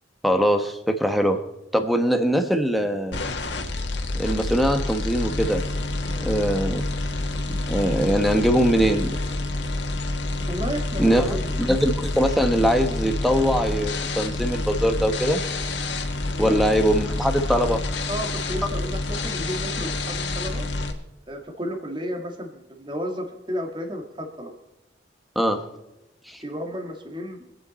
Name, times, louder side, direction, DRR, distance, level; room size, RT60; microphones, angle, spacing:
voice 1, 0.2-1.4 1.7-3.2 4.1-5.7 6.1-6.9 7.5-9.2 11.0-15.4 16.4-18.0 25.3-25.6 26.3-26.4, equal, ahead, 6 dB, 1.1 m, -22 dB
sound 1, 3.1-20.9, left 2 dB, 70° left, 1.6 m, -28 dB
voice 2, 10.5-11.6 16.3-16.6 18.1-20.6 21.3-24.5 26.4-27.5, equal, 25° right, 4 dB, 1.8 m, -32 dB
25.5 x 8.8 x 4.2 m, 0.94 s
head